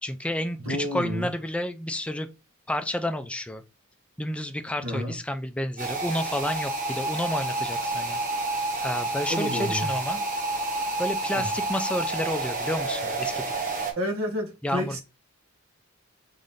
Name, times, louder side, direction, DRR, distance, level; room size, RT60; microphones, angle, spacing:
voice 1, 0.0-2.3 2.7-3.6 4.2-8.2 8.8-10.2 11.0-13.4 14.6-15.0, left 1 dB, 5° left, 0.4 m, -30 dB
voice 2, 0.6-1.3 4.8-5.2 9.3-9.9 11.3-11.4 14.0-15.0, equal, 75° right, 1.2 m, -30 dB
sound 1, 5.8-13.9, right 2 dB, 40° right, 1.3 m, -29 dB
3.7 x 3.5 x 4.0 m
head